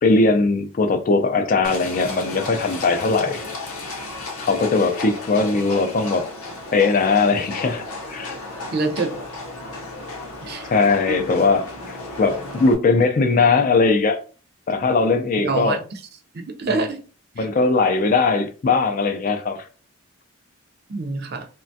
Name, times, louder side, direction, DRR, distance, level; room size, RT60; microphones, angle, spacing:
voice 1, 0.0-3.5 4.4-6.3 6.7-8.3 10.7-14.2 14.7-15.8 16.7-16.8 17.4-19.6, left 3 dB, 40° left, 0.3 m, -20 dB
Livestock farm animals working animals, 1.6-12.7, left 2 dB, 85° left, 0.7 m, -34 dB
voice 2, 8.7-9.2 10.4-10.7 11.1-11.2 15.4-15.8 16.3-17.0 17.4-17.5 20.9-21.5, right 3 dB, 45° right, 0.4 m, -25 dB
3.2 x 2.2 x 2.6 m
head